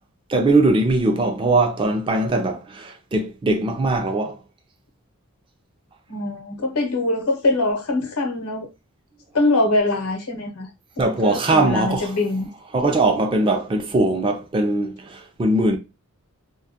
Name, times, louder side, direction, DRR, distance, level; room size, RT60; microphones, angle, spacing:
voice 1, 0.3-4.4 11.0-12.1 12.7-15.8, right 2 dB, 25° right, 0.3 m, -20 dB
voice 2, 6.1-8.7 9.3-10.7 11.0-12.5, left 2 dB, 90° left, 0.7 m, -23 dB
2.2 x 2.1 x 2.7 m
head